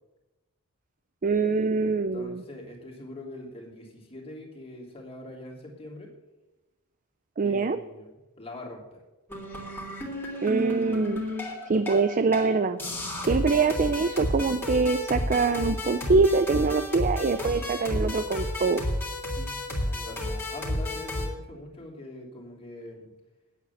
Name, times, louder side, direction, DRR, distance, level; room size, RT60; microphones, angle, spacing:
voice 1, 1.2-2.4 7.4-7.8 10.4-11.2 11.7-12.8 13.2-18.8, right 4 dB, 35° right, 11 dB, 0.5 m, -24 dB
voice 2, 1.8-6.1 7.4-9.0 19.3-19.5 19.9-23.1, left 1 dB, 25° left, -1 dB, 3.2 m, -43 dB
sound 1, 9.3-12.0 12.3-12.5 12.8-21.3, left 1 dB, 10° left, 3.1 m, -32 dB
9.6 x 8.3 x 8.4 m, 1.1 s
head